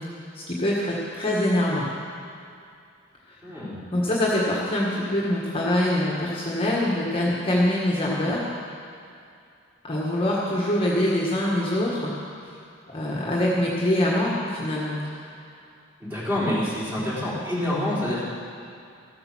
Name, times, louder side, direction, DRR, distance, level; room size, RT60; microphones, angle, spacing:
voice 1, 0.3-1.8 3.3-3.4 3.9-8.4 9.8-12.1 12.9-15.0, left 1 dB, 30° left, -5 dB, 1.5 m, -24 dB
voice 2, 3.4-3.9 16.0-18.3, left 1 dB, 10° right, -9 dB, 3.9 m, -27 dB
14.5 x 8.9 x 6.1 m, 2.4 s
head